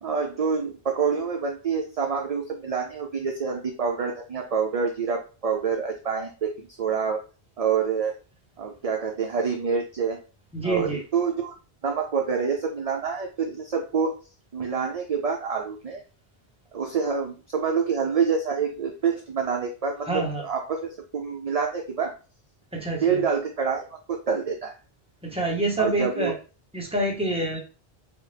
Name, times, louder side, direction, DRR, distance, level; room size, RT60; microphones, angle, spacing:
voice 1, 0.0-6.5 6.8-7.2 7.6-8.1 8.6-10.2 10.6-11.5 11.8-14.2 14.5-16.0 16.7-22.1 23.0-24.7 25.8-26.3, right 6 dB, 45° right, 2 dB, 0.5 m, -27 dB
voice 2, 10.5-11.0 20.1-20.4 22.7-23.2 25.2-26.3 26.7-27.6, right 1 dB, 5° right, -2 dB, 1.0 m, -27 dB
4.0 x 2.3 x 3.3 m, 0.35 s
omnidirectional pair, 1.1 m